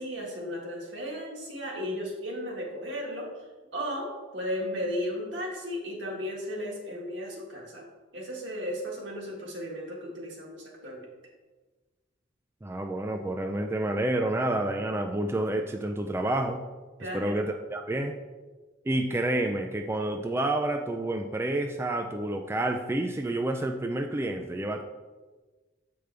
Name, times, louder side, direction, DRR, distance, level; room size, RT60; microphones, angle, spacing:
voice 1, 0.0-3.5 3.7-7.9 8.1-11.1 17.0-17.3, equal, 75° right, -2 dB, 1.7 m, -35 dB
voice 2, 12.6-16.6 17.1-18.2 18.9-24.8, right 1 dB, 15° right, 3 dB, 0.3 m, -29 dB
7.8 x 5.1 x 3.4 m, 1.3 s
head